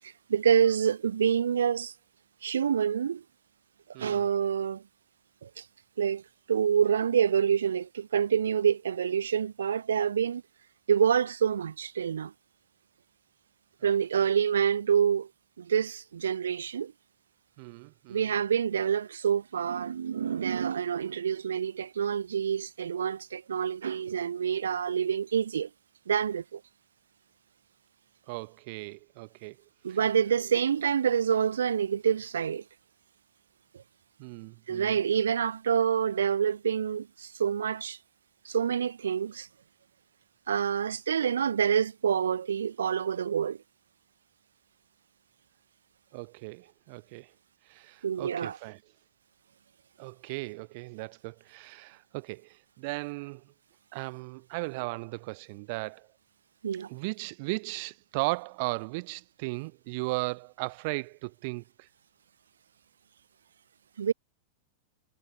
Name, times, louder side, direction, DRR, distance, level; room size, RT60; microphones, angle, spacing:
voice 1, 0.0-1.9 2.4-3.2 4.0-4.8 5.4-5.6 6.0-6.2 6.5-10.4 10.9-12.3 13.8-15.3 15.6-16.9 18.1-25.7 26.1-26.6 29.8-32.6 33.7-33.8 34.7-38.0 38.4-39.5 40.5-43.6 48.0-48.6 56.6-56.9 64.0-64.1, right 8 dB, 70° right, 1.2 m, -27 dB
voice 2, 17.6-18.2 28.3-29.6 29.9-30.0 34.2-35.0 46.1-47.3 47.7-48.8 50.0-53.4 53.9-56.1 56.9-61.9, right 27 dB, 50° right, 1.6 m, -36 dB
figure-of-eight pair, 90°, 0 cm